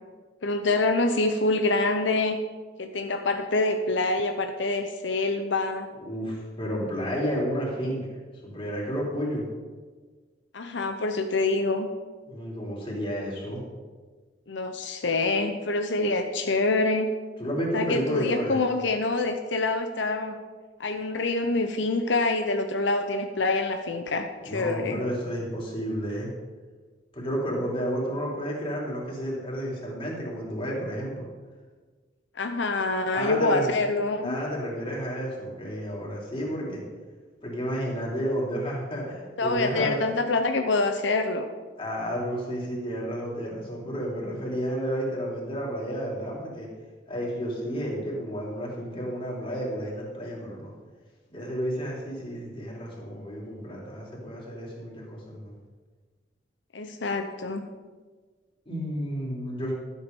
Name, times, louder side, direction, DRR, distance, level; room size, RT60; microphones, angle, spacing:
voice 1, 0.4-2.4 2.8-5.9 10.5-11.9 14.5-17.1 17.7-20.4 20.8-25.0 32.4-34.3 39.4-41.5 56.7-57.7, left 2 dB, 90° left, 6 dB, 0.8 m, -26 dB
voice 2, 6.0-8.0 8.4-9.4 12.3-13.6 17.4-18.6 24.4-26.3 27.1-31.3 33.1-33.7 34.2-36.8 37.4-40.1 41.8-46.7 47.1-50.7 51.3-55.5 58.6-59.7, equal, 30° left, -3 dB, 3.3 m, -31 dB
12.0 x 8.6 x 5.3 m, 1.4 s
head